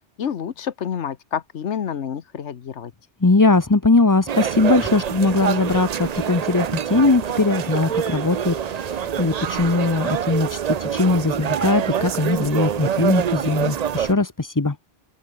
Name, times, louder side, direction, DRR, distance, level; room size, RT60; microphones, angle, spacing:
voice 1, 0.2-2.9, left 8 dB, 85° left, 1.3 m, -28 dB
voice 2, 3.2-14.8, left 3 dB, 20° left, 0.8 m, -20 dB
sound 1, 4.3-14.1, right 8 dB, 50° right, 0.5 m, -26 dB
omnidirectional pair, 1.2 m